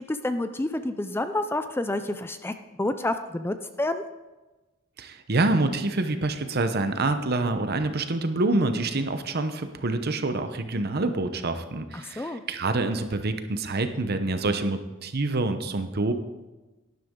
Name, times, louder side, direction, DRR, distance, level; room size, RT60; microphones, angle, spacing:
voice 1, 0.1-2.5 2.8-4.0 11.9-12.4, left 1 dB, 10° left, 9 dB, 0.4 m, -29 dB
voice 2, 5.0-16.1, right 2 dB, 50° right, 9 dB, 0.9 m, -26 dB
12.0 x 11.0 x 3.8 m, 1.1 s
head